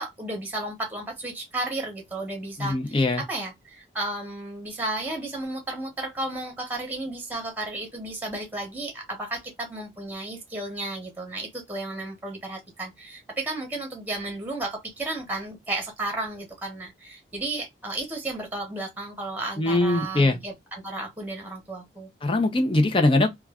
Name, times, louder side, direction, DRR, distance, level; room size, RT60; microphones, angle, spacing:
voice 1, 0.0-22.1, right 2 dB, 10° right, 1.0 m, -33 dB
voice 2, 2.6-3.2 19.6-20.4 22.2-23.3, left 2 dB, 30° left, 0.6 m, -21 dB
3.0 x 2.3 x 2.3 m
head